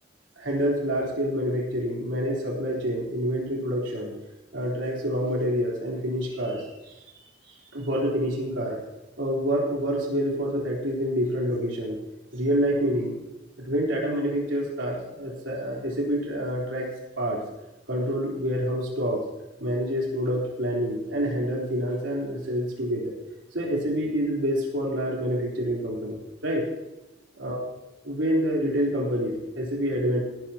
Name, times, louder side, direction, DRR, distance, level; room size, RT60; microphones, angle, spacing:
voice 1, 0.4-4.1 4.5-7.0 7.4-8.8 9.2-12.0 12.3-13.2 13.6-16.9 17.2-17.4 17.9-19.2 19.6-23.1 23.5-26.7 27.4-27.6 28.0-30.2, equal, 75° right, -2 dB, 3.8 m, -27 dB
18.0 x 12.0 x 2.9 m, 1.0 s
head